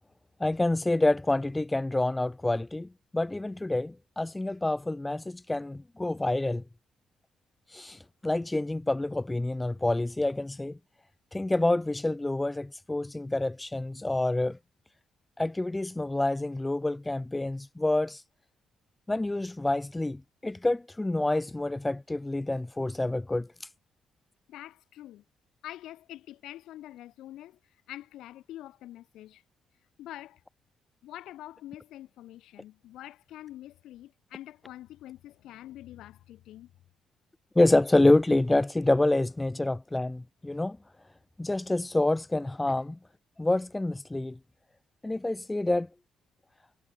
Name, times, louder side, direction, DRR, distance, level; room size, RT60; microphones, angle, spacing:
voice 1, 0.4-2.9 3.1-6.6 7.7-10.8 11.3-14.6 15.4-18.2 19.1-23.5 37.6-40.8 41.4-42.9 43.4-44.4 45.0-45.9, left 2 dB, 20° left, 0.3 m, -27 dB
voice 2, 24.5-25.2 25.6-27.6 27.9-29.4 30.0-30.4 31.0-36.7 42.7-42.8, left 13 dB, 75° left, 1.0 m, -45 dB
hypercardioid pair, 45°, 0 cm